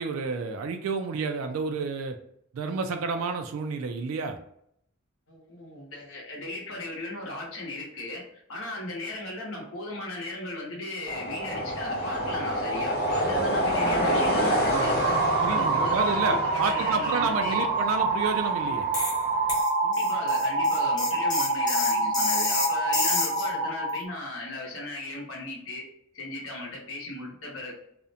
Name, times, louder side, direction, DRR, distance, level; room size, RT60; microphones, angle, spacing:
voice 1, 0.0-2.2 2.5-4.4 15.4-18.9, right 4 dB, 85° right, 6 dB, 0.3 m, -30 dB
voice 2, 5.3-17.7 19.8-25.8 26.1-27.7, left 1 dB, 80° left, -3 dB, 0.8 m, -37 dB
sound 1, 11.1-19.6, equal, 50° left, 0.8 m, -28 dB
sound 2, 14.7-24.0, right 3 dB, 30° right, 0.6 m, -27 dB
sound 3, 18.9-19.2 19.5-23.5, left 3 dB, 20° left, 0.6 m, -29 dB
2.4 x 2.1 x 2.6 m, 0.72 s
head